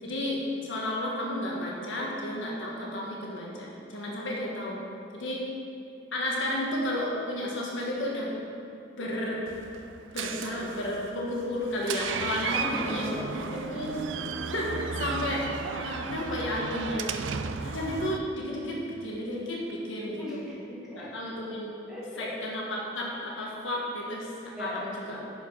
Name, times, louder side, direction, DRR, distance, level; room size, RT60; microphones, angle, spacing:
voice 1, 0.0-4.9 5.1-5.4 6.1-8.3 9.0-9.4 10.1-13.1 13.5-13.9 14.5-17.1 17.6-20.4 20.7-21.7 22.2-25.3, left 1 dB, 80° left, -3 dB, 1.6 m, -32 dB
Door, 9.5-18.2, right 5 dB, 80° right, 0.4 m, -35 dB
voice 2, 12.4-13.7 20.2-21.1 21.9-22.3 24.6-24.8, equal, 5° right, -8 dB, 2.2 m, -37 dB
9.4 x 5.0 x 5.6 m, 2.7 s
head